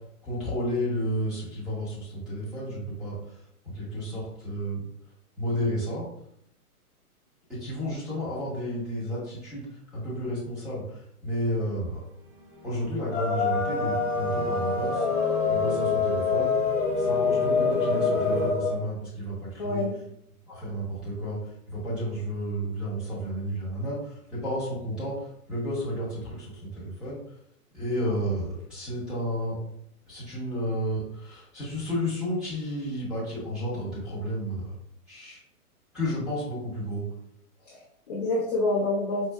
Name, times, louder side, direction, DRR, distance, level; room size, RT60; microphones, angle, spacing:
voice 1, 0.2-3.1 3.7-4.8 5.4-6.1 7.5-9.6 9.9-10.8 11.2-12.0 12.6-15.0 15.5-16.6 17.0-19.3 19.6-19.8 20.5-21.4 21.7-24.0 24.3-25.2 25.5-26.5 26.8-27.2 27.7-29.6 30.1-34.6 35.1-35.4 35.9-37.0, equal, ahead, -11 dB, 0.9 m, -31 dB
sound 1, 12.0-18.5, equal, 40° right, 0.8 m, -38 dB
sound 2, 13.1-18.7, left 4 dB, 55° left, 0.8 m, -25 dB
voice 2, 19.6-20.0 37.6-39.3, left 2 dB, 30° left, -5 dB, 0.4 m, -28 dB
4.5 x 2.6 x 2.2 m, 0.74 s
hypercardioid pair, 150°, 45 cm